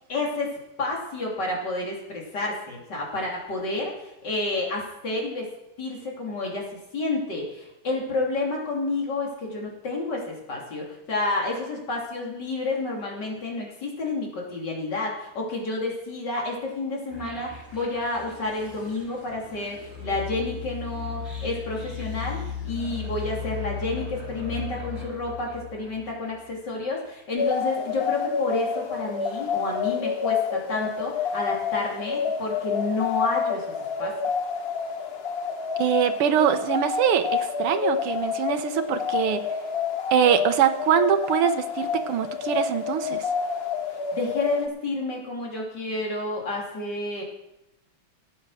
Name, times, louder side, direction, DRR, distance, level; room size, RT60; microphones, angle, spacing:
voice 1, 0.1-5.5 5.8-33.7 34.0-34.2 44.1-47.2, left 2 dB, 50° left, -2 dB, 3.5 m, -30 dB
sound 1, 17.1-26.3, left 7 dB, 10° left, 3.7 m, -36 dB
sound 2, 27.4-44.7, left 6 dB, 70° left, 0.5 m, -28 dB
voice 2, 35.8-39.4 40.1-43.3, right 9 dB, 85° right, 9 dB, 1.9 m, -23 dB
14.5 x 8.7 x 6.2 m, 0.89 s
omnidirectional pair, 2.4 m